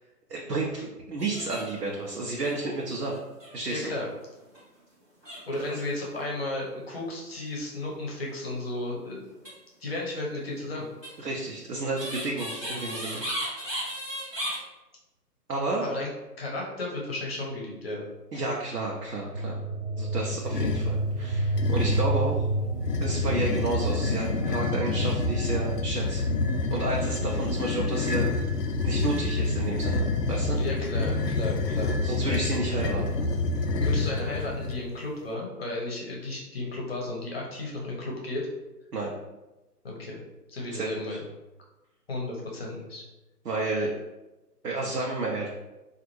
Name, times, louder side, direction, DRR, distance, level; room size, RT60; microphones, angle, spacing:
voice 1, 0.3-0.7 1.1-3.2 3.5-3.9 5.7-5.8 11.2-13.2 15.5-15.9 18.3-19.6 20.0-22.5 23.0-26.2 26.7-28.3 28.8-30.6 32.0-33.1 38.9-39.1 40.7-41.2 43.4-43.9 44.6-45.5, right 2 dB, 75° right, -2 dB, 0.7 m, -31 dB
sound 1, 1.2-2.1 2.4-3.8 4.4-4.6 5.2-6.1 9.3-9.5 11.0-14.6, equal, 10° right, 0.9 m, -35 dB
voice 2, 3.7-4.1 5.5-9.2 9.8-10.9 15.8-16.1 16.4-18.0 30.5-32.0 33.8-38.5 39.8-40.2 40.5-41.3 42.1-43.0, left 2 dB, 40° left, -2 dB, 0.8 m, -34 dB
sound 2, 19.3-25.8, right 2 dB, 40° right, 0.5 m, -29 dB
sound 3, 20.4-21.0 21.6-22.2 22.8-34.8, left 3 dB, 75° left, 0.6 m, -28 dB
3.9 x 2.4 x 3.0 m, 1.0 s
figure-of-eight pair, 140°, 48 cm